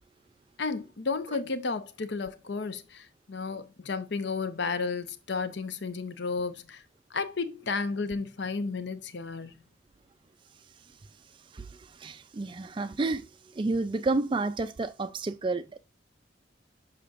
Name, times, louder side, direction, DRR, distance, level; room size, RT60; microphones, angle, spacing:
voice 1, 0.6-6.8 7.1-9.7, left 4 dB, 65° left, 0.8 m, -33 dB
voice 2, 12.0-13.2 13.5-15.8, right 3 dB, 25° right, 0.3 m, -30 dB
6.7 x 5.8 x 2.5 m
head